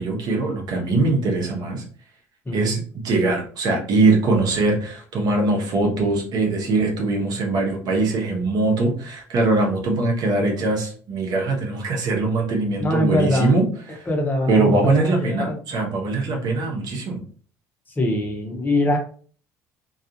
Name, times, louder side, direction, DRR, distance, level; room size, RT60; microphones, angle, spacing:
voice 1, 0.0-1.8 2.5-2.8 3.0-13.6 13.9-14.1 14.5-17.2, right 3 dB, 60° right, 1 dB, 0.9 m, -22 dB
voice 2, 2.5-2.8 12.8-13.5 14.1-15.6 18.0-19.0, left 1 dB, 25° left, 1 dB, 0.9 m, -23 dB
2.3 x 2.3 x 2.8 m, 0.44 s
hypercardioid pair, 65°, 8 cm